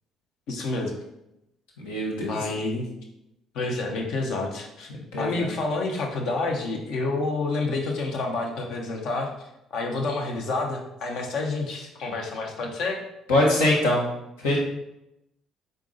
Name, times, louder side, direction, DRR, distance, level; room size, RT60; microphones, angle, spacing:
voice 1, 0.5-0.9 2.3-2.9 3.5-4.9 5.2-9.3 9.7-13.0, left 3 dB, 70° left, 1 dB, 0.9 m, -28 dB
voice 2, 1.8-2.3 5.1-5.5 13.3-14.0 14.4-14.6, left 1 dB, 85° left, -3 dB, 1.2 m, -22 dB
3.8 x 3.6 x 3.8 m, 0.87 s
hypercardioid pair, 55°, 0 cm